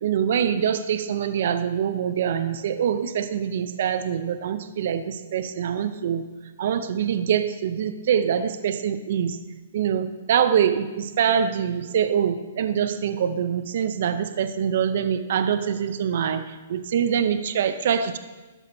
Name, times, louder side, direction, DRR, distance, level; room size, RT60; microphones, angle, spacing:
voice 1, 0.0-6.2 6.6-9.4 9.7-16.4 16.7-18.2, right 8 dB, 60° right, 10 dB, 0.6 m, -24 dB
11.5 x 7.2 x 2.7 m, 1.2 s
hypercardioid pair, 140°, 0 cm